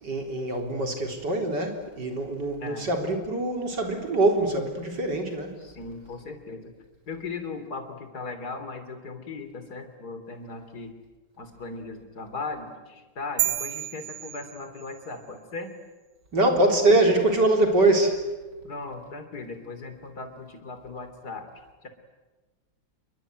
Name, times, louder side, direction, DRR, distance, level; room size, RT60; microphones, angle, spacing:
voice 1, 0.0-5.6 16.3-18.2, right 2 dB, 55° right, 3 dB, 4.3 m, -23 dB
voice 2, 2.6-2.9 5.6-6.7 7.1-11.0 11.4-15.7 18.6-21.5 21.8-21.9, left 3 dB, 50° left, 8 dB, 3.8 m, -38 dB
sound 1, 13.4-15.1, right 12 dB, 90° right, 2.0 m, -30 dB
28.0 x 22.5 x 9.3 m, 1.2 s
omnidirectional pair, 2.2 m